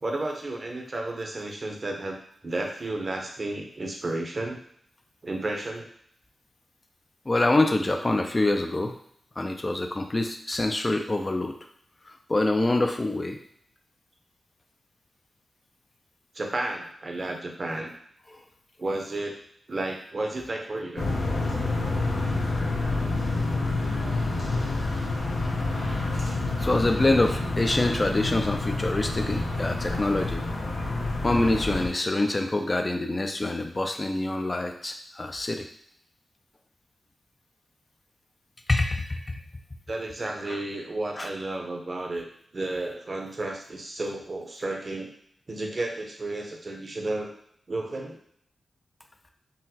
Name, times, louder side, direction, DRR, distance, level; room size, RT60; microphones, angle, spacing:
voice 1, 0.0-4.6 5.2-5.9 16.3-17.9 18.8-19.4 19.7-21.1 39.9-42.3 42.5-45.1 45.5-47.3 47.7-48.2, right 2 dB, 50° right, 1 dB, 0.7 m, -32 dB
voice 2, 7.3-9.0 9.4-11.6 12.0-13.4 18.3-18.4 26.2-30.5 31.2-35.7 38.7-39.4 40.5-40.6 41.2-41.3, left 2 dB, 35° left, 5 dB, 0.4 m, -26 dB
scooters pass by slow and medium speed, 21.0-31.9, left 2 dB, 80° left, 0.8 m, -28 dB
3.8 x 2.1 x 2.8 m, 0.66 s
cardioid pair, 55°, 0 cm